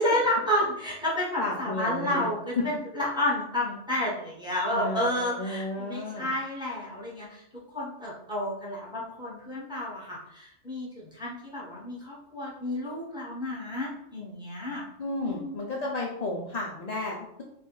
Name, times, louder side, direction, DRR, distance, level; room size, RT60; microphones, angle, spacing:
voice 1, 0.0-7.4 7.7-14.8 15.3-15.6, left 1 dB, 5° right, -5 dB, 0.9 m, -30 dB
voice 2, 1.4-2.3 4.7-6.3 15.0-17.4, left 2 dB, 75° left, -2 dB, 0.3 m, -33 dB
2.9 x 2.5 x 3.7 m, 0.78 s
omnidirectional pair, 1.3 m